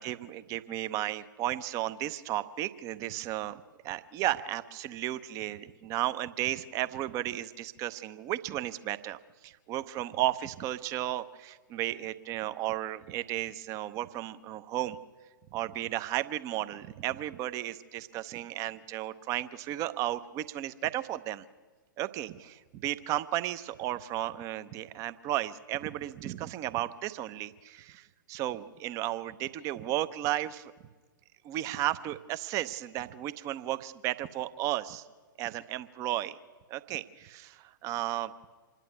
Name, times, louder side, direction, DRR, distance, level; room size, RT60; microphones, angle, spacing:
voice 1, 0.0-3.6 3.8-15.0 15.5-21.4 22.0-30.7 31.4-35.0 35.4-36.4 36.7-38.3, right 14 dB, 30° right, 14 dB, 0.7 m, -34 dB
26.0 x 11.0 x 9.3 m, 1.4 s
figure-of-eight pair, 110°, 11 cm